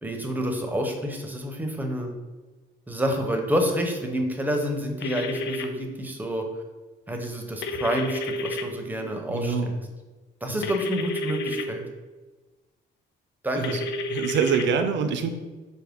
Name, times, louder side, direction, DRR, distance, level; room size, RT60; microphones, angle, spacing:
voice 1, 0.0-2.1 2.9-6.5 7.1-9.8 10.4-11.8 13.4-13.8, equal, 10° right, 3 dB, 0.6 m, -28 dB
sound 1, 5.0-5.6 7.6-8.6 10.6-11.6 13.6-14.7, left 1 dB, 60° left, 0.4 m, -30 dB
voice 2, 9.3-9.7 10.5-10.6 13.5-13.8 14.1-15.3, right 6 dB, 65° right, 7 dB, 0.5 m, -25 dB
4.8 x 2.1 x 3.5 m, 1.2 s
cardioid pair, 90°, 20 cm